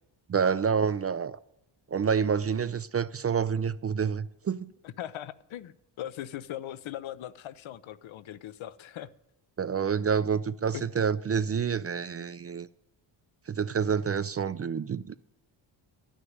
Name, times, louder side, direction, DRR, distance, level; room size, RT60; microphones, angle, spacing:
voice 1, 0.3-1.4 1.9-4.7 9.6-12.7 13.5-15.2, right 6 dB, 30° right, 0.4 m, -28 dB
voice 2, 4.8-9.1 10.7-10.8, left 12 dB, 70° left, 0.7 m, -40 dB
11.5 x 6.4 x 9.4 m
cardioid pair, 65°, 49 cm